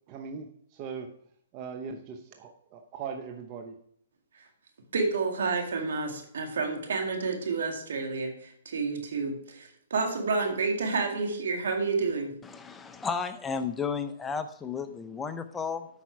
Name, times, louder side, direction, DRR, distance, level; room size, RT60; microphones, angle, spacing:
voice 1, 0.1-1.1 1.5-3.8, right 5 dB, 35° right, 5 dB, 0.8 m, -40 dB
voice 2, 4.9-12.3, right 4 dB, 70° right, 3 dB, 2.2 m, -29 dB
voice 3, 12.4-15.9, left 5 dB, 10° left, 9 dB, 0.6 m, -33 dB
8.4 x 5.9 x 4.6 m, 0.67 s
hypercardioid pair, 140°, 0 cm